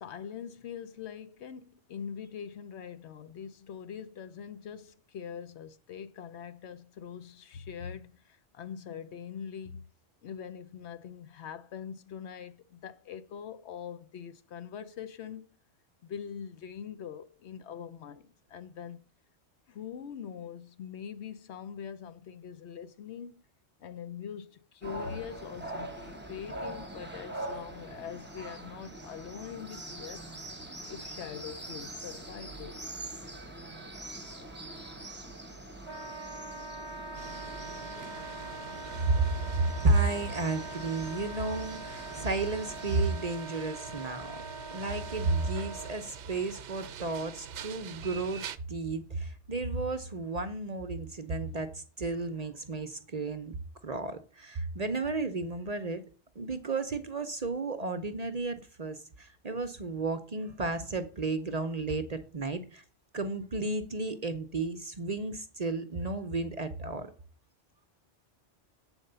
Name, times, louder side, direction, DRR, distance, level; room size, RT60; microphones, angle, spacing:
voice 1, 0.0-9.9 10.2-15.6 16.0-19.0 19.7-23.4 23.8-30.2 30.9-32.8 51.4-51.6, left 8 dB, 70° left, 0.9 m, -43 dB
sound 1, 24.8-43.1, right 1 dB, 10° right, 1.0 m, -43 dB
Wind instrument woodwind instrument, 35.8-46.0, right 2 dB, 35° left, 1.8 m, -43 dB
sound 2, 37.1-48.6, right 8 dB, 80° right, 0.9 m, -46 dB
voice 2, 39.5-44.3 44.7-48.4 48.7-53.6 53.8-56.0 56.4-62.8 63.1-67.1, right 3 dB, 40° right, 0.7 m, -32 dB
8.0 x 4.4 x 6.6 m
omnidirectional pair, 1.2 m